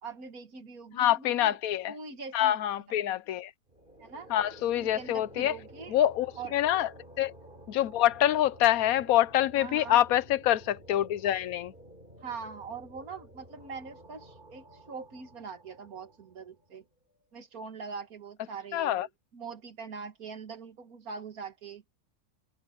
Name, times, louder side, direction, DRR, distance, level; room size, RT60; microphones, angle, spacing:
voice 1, 0.0-1.6 1.9-2.6 2.9-3.0 4.0-4.3 4.7-5.9 6.4-6.5 9.6-10.0 12.2-16.8 17.3-21.8, right 5 dB, 90° right, 2.2 m, -43 dB
voice 2, 0.9-1.9 2.3-3.5 4.3-5.5 5.9-6.9 7.2-7.3 7.7-11.7 18.7-19.1, left 12 dB, 85° left, 1.1 m, -26 dB
sound 1, 3.7-16.8, right 1 dB, 35° right, 5.1 m, -52 dB
omnidirectional pair, 1.5 m